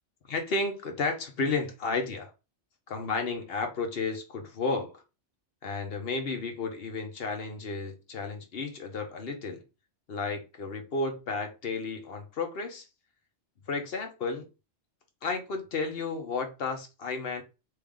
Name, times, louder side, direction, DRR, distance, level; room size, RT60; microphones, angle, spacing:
voice 1, 0.3-2.3 2.9-5.0 5.6-9.6 10.1-12.8 13.7-14.5 15.2-17.4, left 3 dB, 55° left, 1.1 m, -32 dB
3.3 x 2.7 x 3.5 m
omnidirectional pair, 1.2 m